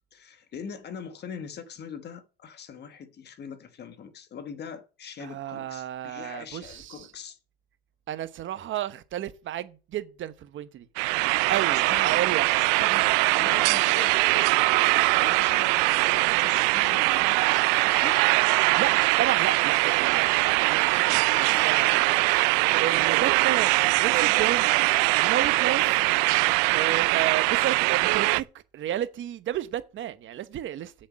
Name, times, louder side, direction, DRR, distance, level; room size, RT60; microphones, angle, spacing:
voice 1, 0.1-7.4 11.1-12.2 12.8-17.5 17.8-18.2 21.1-22.2, left 6 dB, 35° left, 1.3 m, -43 dB
voice 2, 5.2-7.1 8.1-10.9 11.5-12.5 12.9-13.0 18.7-18.9 19.2-21.9 22.8-24.7 25.2-26.0 26.7-28.5 28.7-30.9, right 11 dB, 40° right, 1.0 m, -32 dB
sound 1, 11.0-28.4, right 25 dB, 85° right, 0.5 m, -22 dB
7.8 x 6.5 x 7.5 m
cardioid pair, 140°, 30 cm